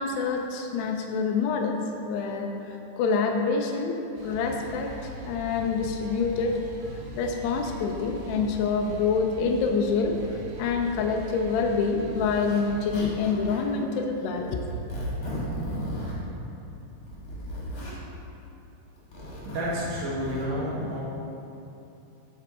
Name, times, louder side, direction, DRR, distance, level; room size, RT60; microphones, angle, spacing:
voice 1, 0.0-1.8 2.0-6.6 7.2-14.6, left 4 dB, 85° left, 3 dB, 2.3 m, -27 dB
sound 1, 4.2-13.0, right 1 dB, 90° right, 3.5 m, -41 dB
Zipper (clothing), 12.2-12.6 12.9-13.7 14.4-16.2 16.9-18.0 19.0-20.4, equal, 45° left, 2.1 m, -35 dB
voice 2, 19.4-21.0, equal, 50° right, -7 dB, 2.4 m, -30 dB
12.5 x 5.3 x 4.2 m, 2.8 s
omnidirectional pair, 5.5 m